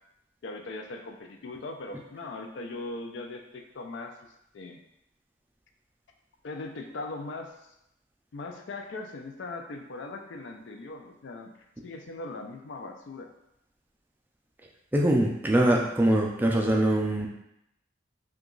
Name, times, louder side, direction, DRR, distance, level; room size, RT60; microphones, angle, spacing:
voice 1, 0.4-4.3 4.5-4.8 6.4-7.7 8.3-11.5 11.8-13.3, left 2 dB, 65° left, 4 dB, 0.4 m, -39 dB
voice 2, 14.9-17.3, right 1 dB, 10° right, -1 dB, 0.3 m, -23 dB
2.8 x 2.3 x 3.7 m, 0.82 s
head